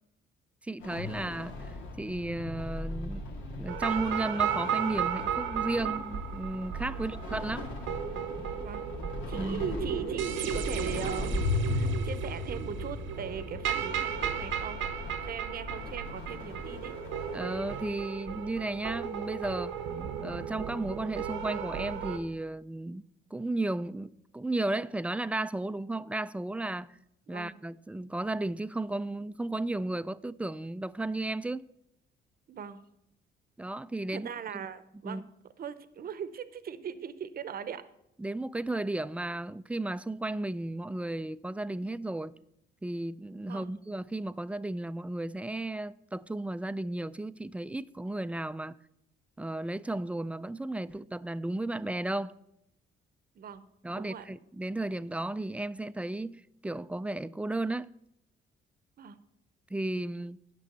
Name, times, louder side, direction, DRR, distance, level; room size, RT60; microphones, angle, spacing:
voice 1, 0.6-3.3 3.6-7.7 9.3-9.7 17.3-19.7 20.2-23.0 23.3-27.0 27.3-31.7 33.6-34.6 35.0-35.2 38.2-42.3 42.8-48.8 49.4-52.3 53.8-57.9 59.7-60.4, right 2 dB, 5° right, 0.3 m, -34 dB
sound 1, 0.8-17.9, left 2 dB, 90° left, 1.8 m, -37 dB
sound 2, 3.7-22.2, right 8 dB, 85° right, 1.0 m, -35 dB
voice 2, 9.3-11.5 11.7-14.8 15.2-16.9 27.3-27.6 32.5-32.8 34.1-35.2 35.6-37.9 43.4-43.7 53.4-53.7 53.9-54.3 59.0-59.2, right 7 dB, 50° right, 0.7 m, -40 dB
9.8 x 6.2 x 6.6 m
cardioid pair, 90°, 20 cm